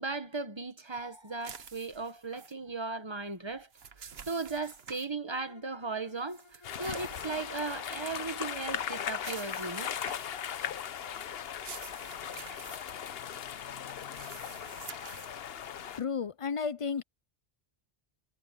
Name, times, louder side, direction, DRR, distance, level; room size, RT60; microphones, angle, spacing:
voice 1, 0.0-3.7 4.0-9.9, right 3 dB, 25° right, 1.3 m, -37 dB
sound 1, 1.4-2.5 3.5-5.1 6.3-7.9 9.1-10.4 11.4-12.8 13.8-15.3, right 6 dB, 75° right, 1.3 m, -49 dB
Bowed string instrument, 5.3-8.8, left 3 dB, 25° left, 3.5 m, -58 dB
sound 2, 6.6-16.0, left 9 dB, 75° left, 1.0 m, -38 dB
voice 2, 16.0-17.0, left 6 dB, 45° left, 0.4 m, -32 dB
omnidirectional pair, 1.0 m